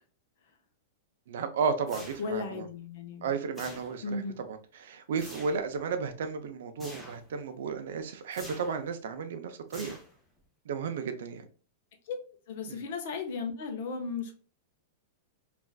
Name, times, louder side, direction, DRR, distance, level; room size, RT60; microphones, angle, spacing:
voice 1, 1.3-2.7 3.2-10.0 10.7-11.5 12.7-12.8, right 5 dB, 65° right, 0.5 m, -33 dB
sound 1, 1.9-2.5 3.5-4.2 5.2-5.7 6.8-7.3 8.3-8.8 9.7-10.4, equal, 5° left, 0.5 m, -47 dB
voice 2, 2.2-3.3 4.0-4.4 12.1-12.2 12.5-14.4, left 4 dB, 45° left, 0.6 m, -35 dB
3.3 x 2.5 x 2.3 m
supercardioid pair, 175°, 0 cm